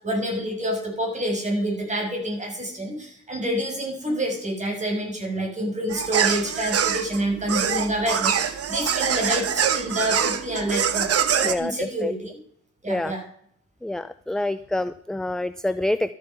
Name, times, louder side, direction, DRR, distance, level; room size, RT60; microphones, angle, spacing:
voice 1, 0.0-11.1 11.4-12.3 12.8-13.2, right 1 dB, 25° right, 1 dB, 6.5 m, -27 dB
sound 1, 5.9-11.5, right 8 dB, 50° right, 1.2 m, -24 dB
voice 2, 11.4-12.1 12.9-13.1 13.8-16.1, left 1 dB, ahead, 13 dB, 0.4 m, -27 dB
13.0 x 8.8 x 5.7 m, 0.65 s
cardioid pair, 90°, 30 cm